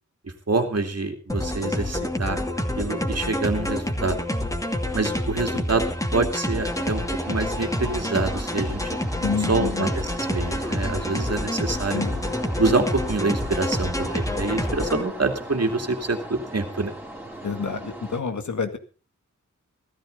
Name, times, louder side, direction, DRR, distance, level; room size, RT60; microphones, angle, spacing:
voice 1, 0.5-2.4 2.8-4.2 4.9-5.8 6.1-8.8 9.5-9.9 10.3-12.0 12.6-16.9, right 3 dB, 55° right, 6 dB, 2.8 m, -26 dB
sound 1, 1.3-15.0, left 1 dB, 10° left, 2.6 m, -28 dB
sound 2, 6.7-18.2, right 1 dB, 5° right, 3.5 m, -38 dB
voice 2, 9.2-9.9 11.9-12.4 17.4-18.8, left 5 dB, 70° left, 8 dB, 2.0 m, -28 dB
16.5 x 14.0 x 4.1 m, 0.35 s
wide cardioid pair, 80°, 30 cm